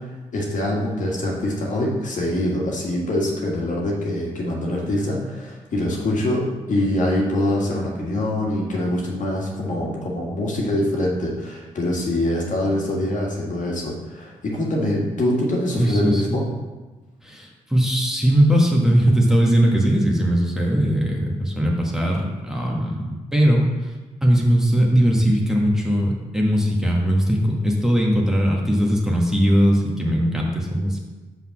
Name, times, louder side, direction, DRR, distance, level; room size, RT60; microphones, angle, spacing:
voice 1, 0.0-6.4 6.7-16.4, left 1 dB, 55° left, -3 dB, 1.9 m, -24 dB
voice 2, 15.8-16.2 17.2-23.9 24.2-31.0, equal, 5° right, -2 dB, 1.6 m, -19 dB
5.7 x 4.1 x 6.0 m, 1.2 s
supercardioid pair, 50°, 15 cm